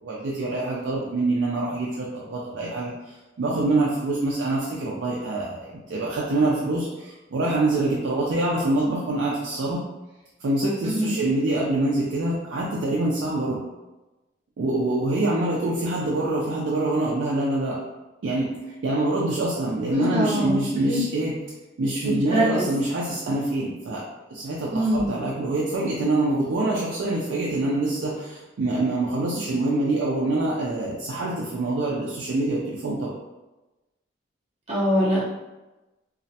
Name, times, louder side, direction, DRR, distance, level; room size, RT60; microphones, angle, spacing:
voice 1, 0.0-9.8 10.4-13.7 14.6-17.8 18.2-18.6 18.8-21.3 21.8-24.0 24.3-33.1, right 2 dB, 75° right, -5 dB, 0.4 m, -25 dB
voice 2, 10.9-11.2 19.9-20.6 20.9-21.0 22.0-22.7 24.7-25.1 34.7-35.2, right 1 dB, 35° right, -6 dB, 0.7 m, -23 dB
2.4 x 2.1 x 2.6 m, 1.1 s
head